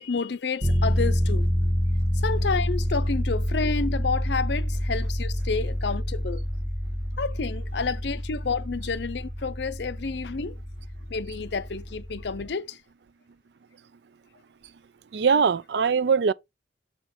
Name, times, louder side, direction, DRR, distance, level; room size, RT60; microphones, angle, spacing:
voice 1, 0.0-1.5 2.2-6.4 7.2-10.6 11.1-12.8, left 4 dB, 70° left, 0.6 m, -30 dB
sound 1, 0.6-12.5, equal, 50° right, 2.5 m, -27 dB
voice 2, 15.1-16.3, right 6 dB, 65° right, 0.4 m, -21 dB
6.7 x 6.0 x 3.8 m
head